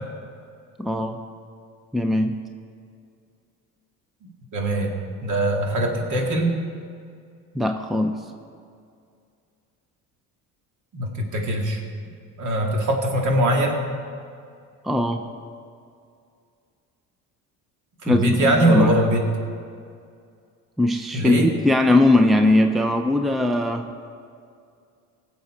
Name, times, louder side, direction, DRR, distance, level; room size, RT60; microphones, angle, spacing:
voice 1, 0.8-1.2 1.9-2.3 7.5-8.1 14.8-15.2 18.1-19.0 20.8-23.9, left 1 dB, ahead, 6 dB, 0.6 m, -20 dB
voice 2, 4.5-6.6 10.9-11.8 12.4-13.9 18.0-19.2 21.1-21.5, right 1 dB, 50° right, 1 dB, 2.2 m, -22 dB
17.5 x 7.3 x 4.4 m, 2.3 s
supercardioid pair, 85°, 37 cm